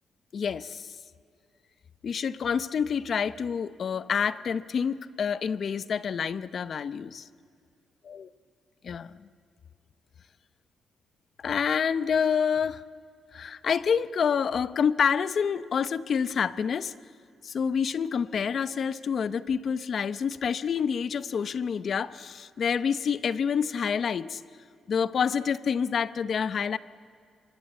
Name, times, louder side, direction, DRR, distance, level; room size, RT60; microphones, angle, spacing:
voice 1, 0.3-0.9 2.0-7.3 8.0-8.3 8.8-9.2 11.4-12.8 13.3-16.9 17.4-24.4 24.9-26.8, left 7 dB, 50° left, 16 dB, 0.7 m, -28 dB
27.0 x 24.0 x 8.4 m, 2.4 s
cardioid pair, 140°, 0 cm